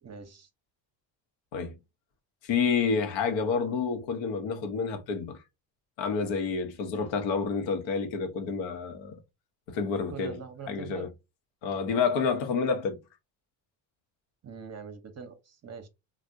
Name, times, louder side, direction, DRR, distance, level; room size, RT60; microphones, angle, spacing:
voice 1, 0.0-0.5 10.1-11.1 14.4-15.9, right 5 dB, 35° right, 0.8 m, -43 dB
voice 2, 2.4-5.4 6.0-9.2 9.7-10.4 10.7-11.1 11.6-13.0, left 5 dB, 65° left, 0.9 m, -29 dB
3.3 x 2.3 x 2.5 m
supercardioid pair, 85°, 47 cm